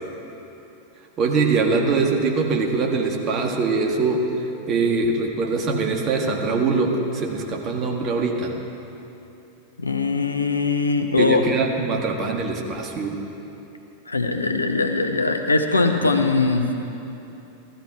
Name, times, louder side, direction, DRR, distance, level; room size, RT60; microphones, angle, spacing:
voice 1, 1.2-4.3 4.7-8.5 11.2-13.2, right 4 dB, 30° right, 1 dB, 1.8 m, -22 dB
voice 2, 9.8-11.4 14.1-16.7, left 3 dB, 80° left, 6 dB, 0.9 m, -21 dB
15.5 x 14.0 x 4.6 m, 2.9 s
figure-of-eight pair, 90°, 0 cm